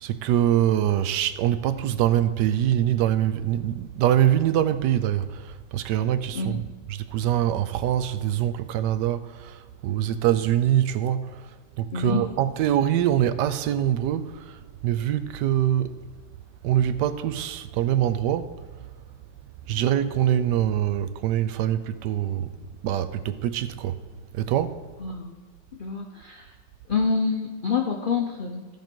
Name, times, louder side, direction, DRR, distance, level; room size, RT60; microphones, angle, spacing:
voice 1, 0.0-6.6 7.1-11.4 11.8-14.6 14.8-16.0 16.6-18.5 19.7-24.0 24.3-24.8, right 11 dB, 75° right, 1.1 m, -24 dB
voice 2, 11.9-12.3 25.0-25.4 25.8-26.5 26.9-28.7, left 5 dB, 70° left, 0.4 m, -27 dB
14.5 x 5.2 x 4.5 m
omnidirectional pair, 2.0 m